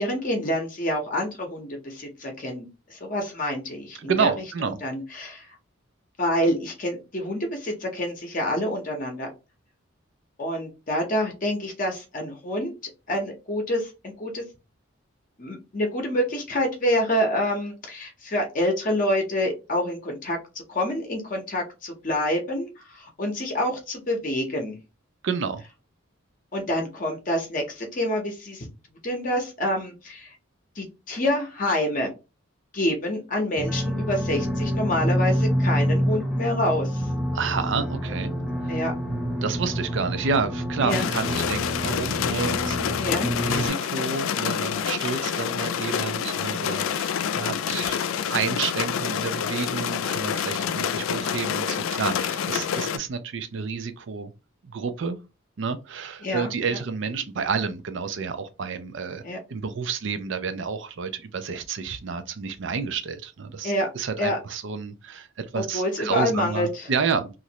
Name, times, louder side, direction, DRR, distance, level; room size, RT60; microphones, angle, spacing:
voice 1, 0.0-4.3 4.8-5.5 6.2-9.3 10.4-12.7 13.1-14.4 15.4-20.4 20.7-24.8 26.5-28.7 29.0-30.4 30.8-32.1 32.7-37.1 38.7-38.9 40.8-41.1 43.0-43.3 56.2-56.5 59.2-59.4 63.6-63.9 64.2-64.4 65.5-66.9, left 1 dB, 40° left, 0.7 m, -27 dB
voice 2, 4.0-4.8 25.2-25.6 37.3-38.3 38.6-38.7 39.4-43.0 43.4-54.3 54.6-55.2 55.6-59.2 59.5-67.4, right 5 dB, 60° right, 0.4 m, -30 dB
sound 1, 33.6-43.7, equal, ahead, 0.5 m, -27 dB
sound 2, 40.9-53.0, left 8 dB, 75° left, 0.3 m, -27 dB
3.0 x 2.5 x 2.8 m
head